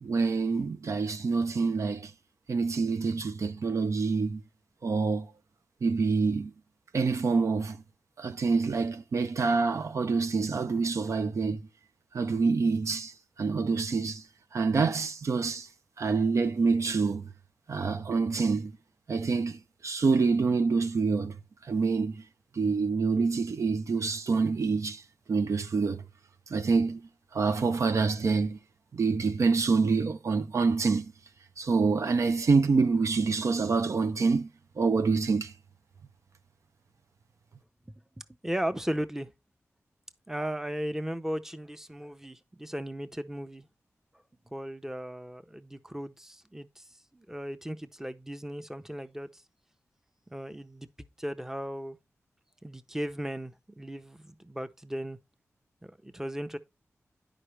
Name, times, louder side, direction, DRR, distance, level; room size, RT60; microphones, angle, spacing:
voice 1, 0.0-2.1 2.5-4.4 4.8-5.3 5.8-6.5 6.9-7.8 8.2-11.6 12.1-13.1 13.4-14.2 14.5-15.7 16.0-17.3 17.7-18.7 19.1-21.4 21.7-22.2 22.6-25.0 25.3-26.0 26.5-27.0 27.3-28.6 28.9-31.1 31.6-34.5 34.8-35.5, right 4 dB, 70° right, 0.6 m, -26 dB
voice 2, 38.4-39.3 40.3-43.7 44.5-46.8 47.1-49.4 50.3-52.0 52.6-55.2 55.8-56.6, equal, 10° right, 0.8 m, -36 dB
9.8 x 5.1 x 3.3 m
cardioid pair, 50°, 5 cm